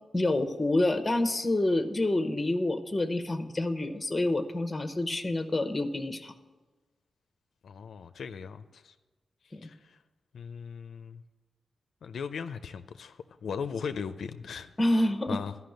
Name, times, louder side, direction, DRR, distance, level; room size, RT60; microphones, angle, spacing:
voice 1, 0.1-6.3 9.5-9.7 14.8-15.4, left 1 dB, 20° left, 0.8 m, -28 dB
voice 2, 7.6-8.9 9.4-10.0 10.3-11.2 12.0-14.7 15.3-15.5, left 6 dB, 80° left, 0.4 m, -38 dB
12.0 x 5.6 x 7.7 m
wide cardioid pair, 95°, 0 cm